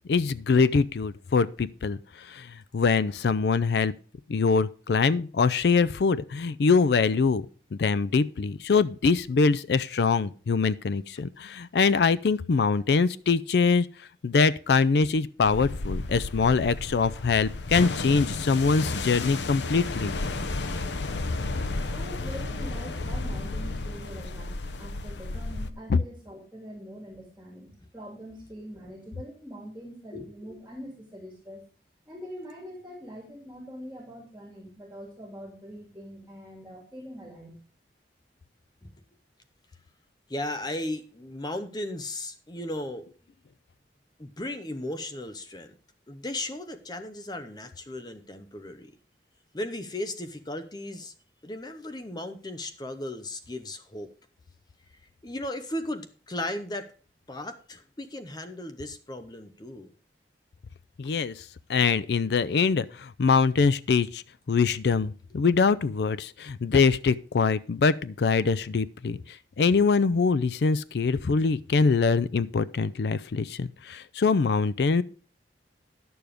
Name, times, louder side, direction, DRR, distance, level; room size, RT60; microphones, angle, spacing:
voice 1, 0.1-2.0 2.3-2.5 2.7-3.9 4.3-7.4 7.7-13.9 14.2-20.1 25.9-26.0 61.0-61.3 61.7-64.2 64.5-69.2 69.6-75.0, left 4 dB, 70° left, 0.4 m, -23 dB
sound 1, 15.4-25.7, left 2 dB, 85° left, 0.8 m, -32 dB
voice 2, 21.9-31.6 32.1-37.6, equal, 10° right, 2.5 m, -43 dB
voice 3, 40.3-43.1 44.2-45.7 46.1-48.9 49.5-51.1 51.4-54.1 55.2-56.9 57.3-59.9 61.0-61.1, left 1 dB, 25° left, 0.7 m, -36 dB
10.5 x 7.0 x 5.0 m
head